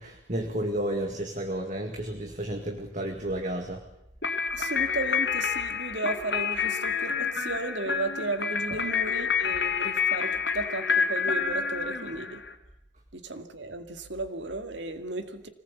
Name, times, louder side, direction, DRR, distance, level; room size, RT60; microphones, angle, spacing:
voice 1, 0.0-3.8 8.7-8.8, right 1 dB, 40° right, 3 dB, 2.1 m, -32 dB
sound 1, 4.2-12.5, left 6 dB, 55° left, 2.6 m, -28 dB
voice 2, 4.5-12.4 13.1-15.5, right 2 dB, 65° right, 7 dB, 2.2 m, -34 dB
25.5 x 19.5 x 8.4 m, 0.83 s
head